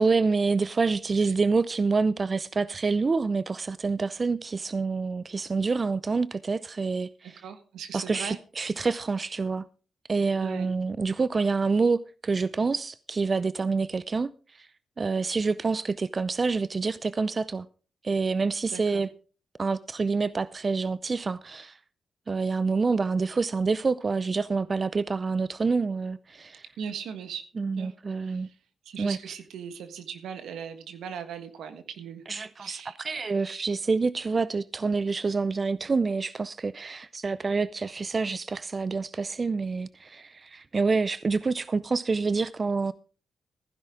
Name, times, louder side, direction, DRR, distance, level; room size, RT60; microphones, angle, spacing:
voice 1, 0.0-7.4 7.9-9.7 10.1-14.7 15.0-17.7 18.0-19.1 19.6-21.8 22.3-26.7 27.6-28.5 29.0-29.2 32.3-42.9, right 4 dB, 45° right, 0.5 m, -27 dB
voice 2, 7.4-8.4 10.4-10.7 18.7-19.0 26.8-27.4 27.8-27.9 28.2-28.4 28.8-32.2 32.6-32.9, right 7 dB, 80° right, 1.5 m, -39 dB
15.5 x 10.5 x 3.7 m
supercardioid pair, 45°, 0 cm